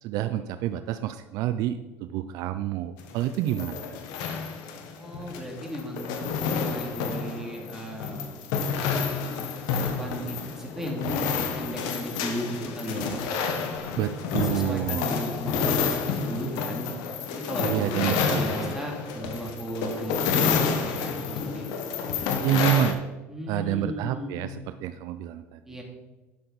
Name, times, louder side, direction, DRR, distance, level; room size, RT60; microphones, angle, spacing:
voice 1, 0.0-3.9 13.9-15.2 17.6-18.8 22.4-23.0 23.5-25.6, right 12 dB, 65° right, 11 dB, 0.5 m, -28 dB
sound 1, 3.0-22.9, left 5 dB, 70° left, 1.3 m, -29 dB
voice 2, 5.0-8.4 9.7-11.1 11.5-13.2 14.4-16.9 17.3-21.7 23.3-24.5 25.7-25.8, right 1 dB, 5° right, 0 dB, 2.7 m, -36 dB
11.5 x 6.6 x 4.1 m, 1.1 s
supercardioid pair, 85°, 7 cm